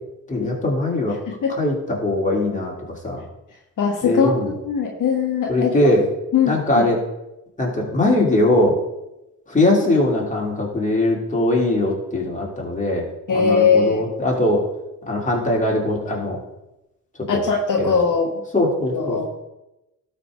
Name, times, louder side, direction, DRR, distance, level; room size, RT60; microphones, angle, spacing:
voice 1, 0.3-1.1 1.6-3.2 4.0-4.5 5.5-6.1 6.4-7.0 7.6-8.8 9.5-14.6 15.1-16.4 17.3-17.4 17.8-17.9 18.5-19.3, left 1 dB, 25° left, -2 dB, 3.3 m, -21 dB
voice 2, 3.8-4.3 4.6-5.7 6.3-6.9 13.3-14.0 17.3-18.3 18.9-19.3, left 6 dB, 65° left, 0 dB, 1.4 m, -20 dB
12.5 x 4.5 x 5.1 m, 0.94 s
supercardioid pair, 60°, 33 cm